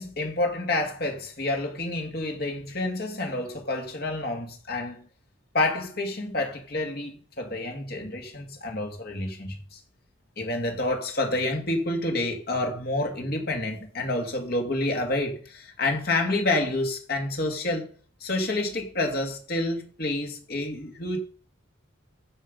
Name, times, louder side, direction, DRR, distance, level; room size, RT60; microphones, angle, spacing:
voice 1, 0.0-5.1 5.5-9.8 10.4-17.9 18.2-21.2, left 2 dB, 50° left, 2.4 m, -28 dB
15.0 x 5.6 x 5.4 m
head